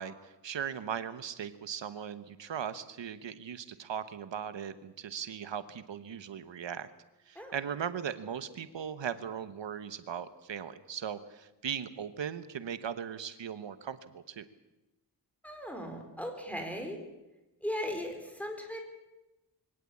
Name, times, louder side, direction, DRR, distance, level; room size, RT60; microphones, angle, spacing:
voice 1, 0.0-6.9 7.3-14.4, right 8 dB, 80° right, 12 dB, 1.1 m, -38 dB
voice 2, 15.4-17.0 17.6-18.8, equal, 5° left, 3 dB, 4.5 m, -37 dB
23.5 x 17.5 x 8.5 m, 1.0 s
wide cardioid pair, 160°, 43 cm